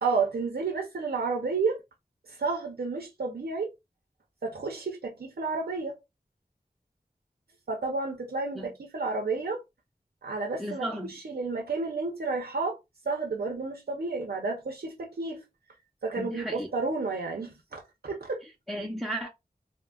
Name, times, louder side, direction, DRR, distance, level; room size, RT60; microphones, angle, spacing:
voice 1, 0.0-1.8 2.3-3.7 4.4-6.0 7.7-9.6 10.2-12.8 13.1-15.5 16.0-18.4, right 4 dB, 85° right, 0.6 m, -31 dB
voice 2, 10.6-11.1 16.1-16.7 18.4-19.3, equal, ahead, 0.6 m, -34 dB
3.6 x 2.1 x 2.3 m
wide cardioid pair, 40°, 16 cm